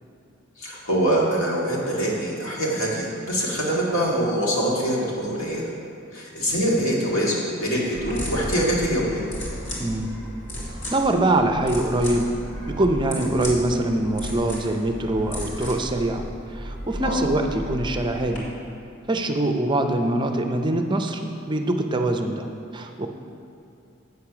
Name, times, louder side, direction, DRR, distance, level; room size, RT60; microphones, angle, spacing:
voice 1, 0.6-5.7 6.1-9.3 17.0-17.2, right 1 dB, 75° left, -4 dB, 2.1 m, -24 dB
sound 1, 7.9-18.4, equal, 60° left, 2.3 m, -34 dB
voice 2, 9.8-10.1 10.9-12.3 12.7-16.2 16.5-18.4 19.1-22.5 22.7-23.1, right 1 dB, 20° right, 5 dB, 0.5 m, -23 dB
8.1 x 6.7 x 5.8 m, 2.8 s
head